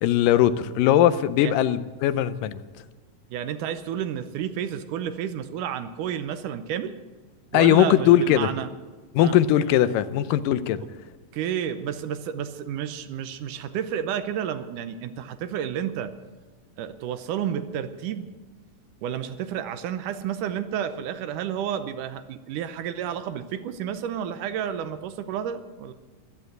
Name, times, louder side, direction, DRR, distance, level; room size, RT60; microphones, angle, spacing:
voice 1, 0.0-2.6 7.5-8.5 9.2-10.8, left 11 dB, 85° left, 13 dB, 2.4 m, -20 dB
voice 2, 3.3-6.9 7.5-8.7 9.2-9.4 11.3-16.1 16.8-18.3 19.0-25.9, right 9 dB, 80° right, 11 dB, 2.3 m, -31 dB
14.5 x 12.0 x 7.9 m, 1.3 s
omnidirectional pair, 3.8 m